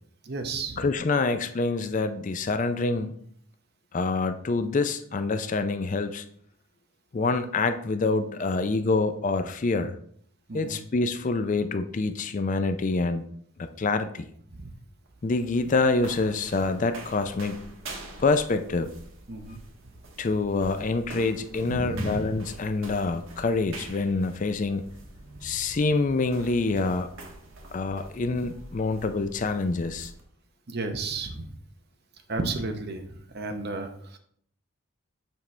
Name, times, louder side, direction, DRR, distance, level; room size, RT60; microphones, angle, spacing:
voice 1, 0.2-0.8 10.5-10.8 14.5-14.7 19.3-19.6 21.7-22.3 25.5-25.6 30.7-31.5 32.3-34.2, right 3 dB, 45° right, 6 dB, 0.8 m, -33 dB
voice 2, 0.8-3.1 3.9-6.2 7.1-10.0 10.5-13.2 13.6-14.3 15.2-17.6 18.2-18.9 20.2-24.8 25.4-27.1 27.7-30.1, left 3 dB, 35° left, 9 dB, 0.4 m, -26 dB
sound 1, 15.0-30.2, right 2 dB, 60° right, 1.3 m, -45 dB
7.2 x 5.7 x 3.2 m, 0.63 s
head